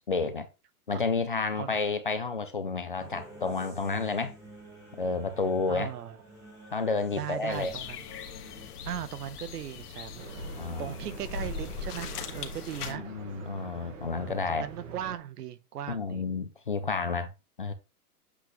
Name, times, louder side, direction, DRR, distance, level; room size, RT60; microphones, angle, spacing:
voice 1, 0.1-0.5 0.9-4.4 5.0-5.9 6.7-7.7 10.6-11.0 12.8-14.7 15.9-17.3 17.6-17.7, left 4 dB, 40° left, 0.4 m, -30 dB
sound 1, 3.0-8.7, right 1 dB, 5° right, 1.0 m, -50 dB
voice 2, 5.7-6.2 7.1-8.0 8.8-10.2 10.8-13.0 14.2-16.2, right 10 dB, 85° right, 1.0 m, -38 dB
sound 2, 7.5-12.9, left 5 dB, 80° left, 1.7 m, -40 dB
sound 3, 10.2-15.2, right 5 dB, 55° right, 1.6 m, -44 dB
8.0 x 3.9 x 3.0 m
hypercardioid pair, 180°, 46 cm